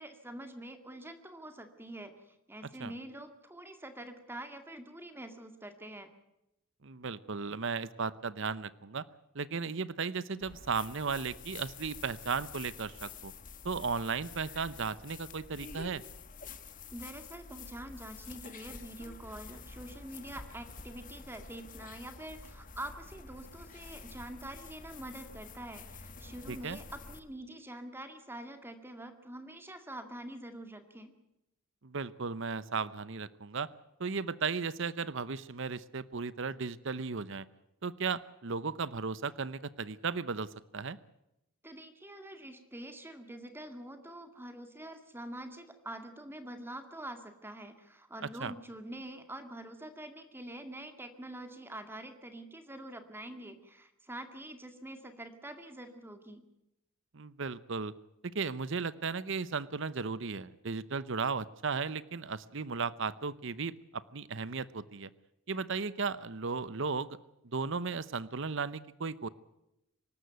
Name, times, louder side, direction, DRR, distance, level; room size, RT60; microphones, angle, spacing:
voice 1, 0.0-6.1 16.9-31.1 41.6-56.4, right 1 dB, 10° right, 7 dB, 2.1 m, -45 dB
voice 2, 6.8-9.0 9.3-13.3 13.6-16.0 26.5-26.8 31.8-33.7 34.0-37.4 37.8-41.0 48.2-48.5 57.1-57.9 58.2-65.1 65.5-67.2 67.5-69.3, right 5 dB, 60° right, 17 dB, 0.8 m, -35 dB
sound 1, 10.4-27.2, left 4 dB, 40° left, 1.3 m, -48 dB
25.0 x 13.0 x 9.2 m, 0.85 s
head